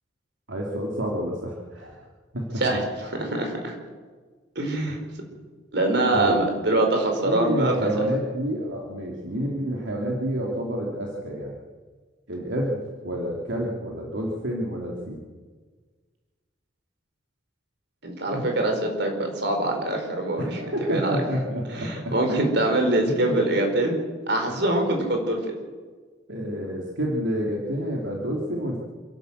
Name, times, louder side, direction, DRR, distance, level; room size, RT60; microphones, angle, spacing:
voice 1, 0.5-1.9 2.3-2.6 6.1-6.4 7.2-11.6 12.3-15.2 18.3-18.4 20.4-22.1 23.0-23.4 24.5-24.6 26.3-28.8, equal, 75° right, -2 dB, 3.0 m, -29 dB
voice 2, 2.6-3.7 4.5-5.0 5.7-7.9 18.0-20.6 20.9-21.2 21.7-23.9 24.3-25.4, right 2 dB, 60° right, 3 dB, 4.8 m, -24 dB
27.5 x 12.0 x 8.0 m, 1.5 s
head